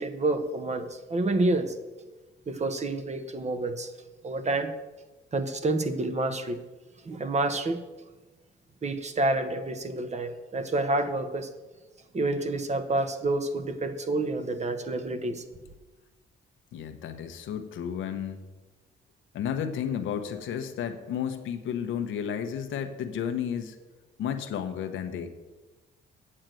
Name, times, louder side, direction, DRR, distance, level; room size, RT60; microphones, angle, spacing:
voice 1, 0.0-1.7 2.5-3.9 4.2-4.7 5.3-6.6 7.0-7.8 8.8-11.5 12.1-15.4, right 2 dB, 35° right, 9 dB, 1.1 m, -28 dB
voice 2, 16.7-18.4 19.3-23.8 24.2-25.3, left 8 dB, 80° left, 7 dB, 1.1 m, -32 dB
8.8 x 6.5 x 7.7 m, 1.2 s
cardioid pair, 90°, 20 cm